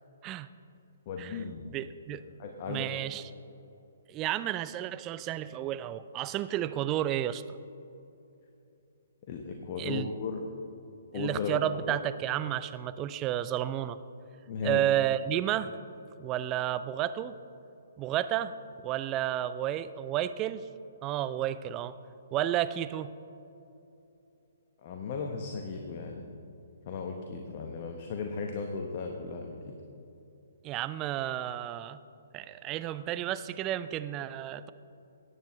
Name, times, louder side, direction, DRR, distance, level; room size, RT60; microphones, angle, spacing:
voice 1, 1.1-1.6 2.4-2.9 9.3-10.4 11.1-11.6 11.9-12.0 14.5-14.9 24.8-26.3 26.9-29.7, left 5 dB, 40° left, 3 dB, 1.0 m, -36 dB
voice 2, 1.7-2.2 2.7-3.3 4.1-7.4 9.8-10.1 11.1-14.0 14.6-15.7 16.2-17.3 18.0-18.5 18.8-20.7 21.0-21.9 22.3-23.1 30.6-32.0 32.3-34.7, right 12 dB, 25° right, 14 dB, 0.4 m, -31 dB
17.5 x 9.3 x 3.1 m, 2.8 s
figure-of-eight pair, 130°, 0 cm